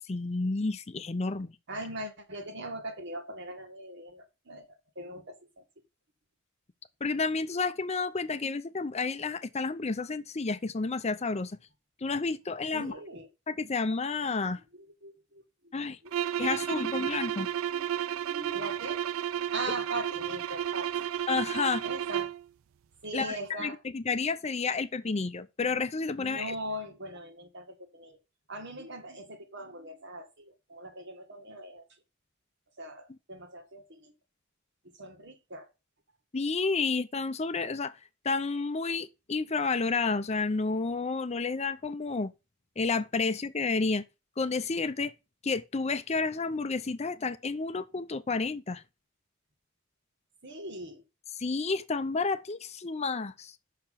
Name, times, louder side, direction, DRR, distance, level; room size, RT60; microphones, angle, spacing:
voice 1, 0.1-1.5 7.0-11.6 12.0-12.9 13.5-14.6 15.7-16.0 16.4-17.5 21.3-21.8 23.1-26.5 36.3-38.0 38.2-42.3 42.8-44.0 44.4-45.1 45.4-48.8 51.4-53.5, left 4 dB, 30° left, 0.6 m, -30 dB
voice 2, 1.7-5.6 12.7-13.3 14.7-15.7 17.7-17.9 18.3-19.0 19.5-21.1 21.8-22.3 23.0-23.8 26.2-28.2 28.5-31.8 32.8-34.1 34.9-35.7 50.4-51.0, right 1 dB, 60° right, 2.0 m, -41 dB
sound 1, 16.1-22.4, right 10 dB, 85° right, 0.3 m, -32 dB
6.9 x 5.9 x 5.7 m
head